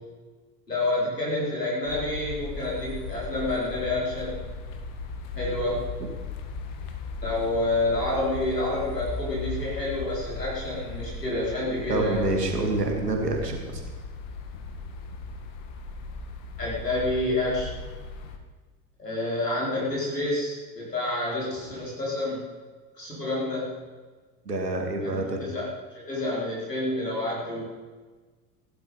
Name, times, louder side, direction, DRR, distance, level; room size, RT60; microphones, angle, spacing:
voice 1, 0.7-4.5 5.3-5.8 7.2-12.2 16.6-17.7 19.0-22.4 22.9-23.7 25.0-25.6 25.9-27.7, left 2 dB, 90° left, -6 dB, 4.9 m, -28 dB
sound 1, 1.8-18.4, left 4 dB, 55° left, 1.8 m, -37 dB
voice 2, 11.9-13.9 24.5-25.4, right 2 dB, 85° right, 2 dB, 2.5 m, -27 dB
15.5 x 12.0 x 5.5 m, 1.4 s
figure-of-eight pair, 75°, 47 cm